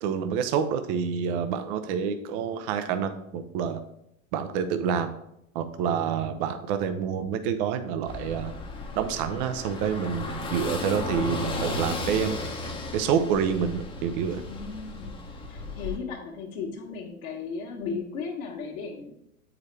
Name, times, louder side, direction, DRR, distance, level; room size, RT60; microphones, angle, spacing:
voice 1, 0.0-3.8 4.3-5.1 5.5-8.5 9.0-12.4 12.9-14.4, right 7 dB, 40° right, 8 dB, 0.6 m, -27 dB
Car passing by / Engine, 8.1-16.0, left 2 dB, 10° left, 0.8 m, -34 dB
voice 2, 14.3-15.2 15.5-19.1, left 5 dB, 60° left, -3 dB, 1.4 m, -36 dB
8.2 x 4.8 x 3.3 m, 0.79 s
hypercardioid pair, 100°, 43 cm